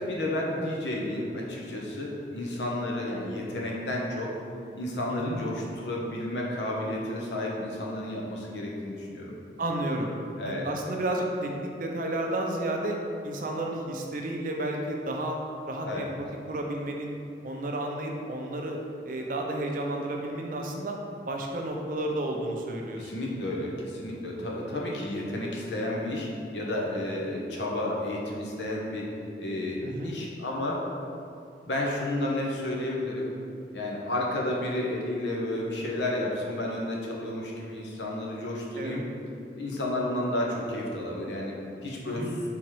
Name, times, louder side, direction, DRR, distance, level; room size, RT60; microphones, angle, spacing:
voice 1, 0.0-4.4 4.7-9.3 10.4-10.7 15.9-16.1 23.0-29.1 29.4-30.9 31.7-33.3 33.7-39.0 39.5-41.5 41.8-42.3, left 1 dB, 85° left, -2 dB, 0.8 m, -31 dB
voice 2, 5.1-5.4 9.6-10.1 10.4-13.0 13.2-15.4 15.7-16.1 16.5-17.1 17.4-18.8 19.0-21.0 21.3-23.1 29.8-30.2 38.8-39.0 42.1-42.3, right 1 dB, 50° right, 1 dB, 0.5 m, -31 dB
3.6 x 3.0 x 4.6 m, 2.5 s
head